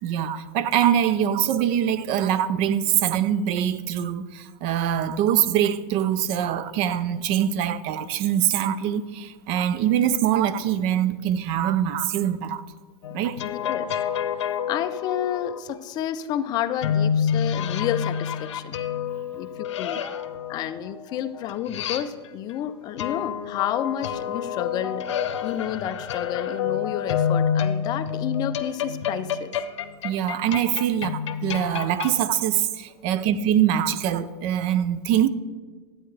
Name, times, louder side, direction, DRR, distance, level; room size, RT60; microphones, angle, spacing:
voice 1, 0.0-12.6 13.1-13.4 30.0-35.3, right 10 dB, 40° right, 0.4 m, -23 dB
sound 1, 13.0-15.6 16.8-22.5 23.0-32.2, left 8 dB, 90° left, 0.7 m, -28 dB
voice 2, 13.4-13.9 14.7-18.8 19.4-20.0 20.5-25.1 25.4-29.5, left 10 dB, 30° left, 0.4 m, -30 dB
10.5 x 8.7 x 3.3 m
supercardioid pair, 150°, 15 cm